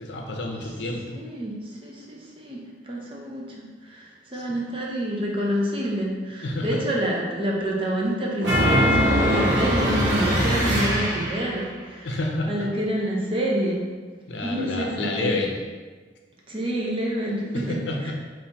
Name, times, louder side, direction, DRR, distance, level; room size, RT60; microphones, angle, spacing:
voice 1, 0.0-1.2 4.3-4.4 6.4-6.8 12.0-12.7 14.3-15.6 17.5-18.1, left 2 dB, 75° left, 1 dB, 0.6 m, -29 dB
voice 2, 1.1-12.2 12.5-13.8 14.4-15.3 16.5-17.8 18.0-18.1, right 1 dB, 30° right, -3 dB, 0.7 m, -28 dB
sound 1, 8.4-11.6, equal, 75° right, 1.2 m, -22 dB
4.1 x 2.6 x 4.1 m, 1.5 s
head